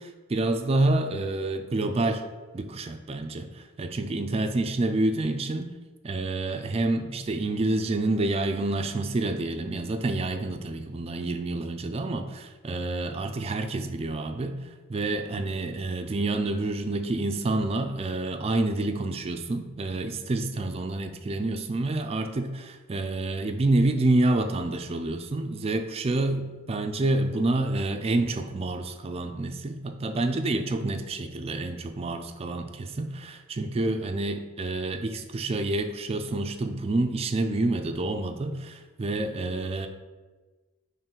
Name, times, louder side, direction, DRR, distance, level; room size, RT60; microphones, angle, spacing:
voice 1, 0.0-2.2 2.5-5.7 6.0-14.6 14.9-39.9, right 2 dB, 30° right, 7 dB, 0.4 m, -28 dB
3.8 x 3.1 x 4.4 m, 1.3 s
head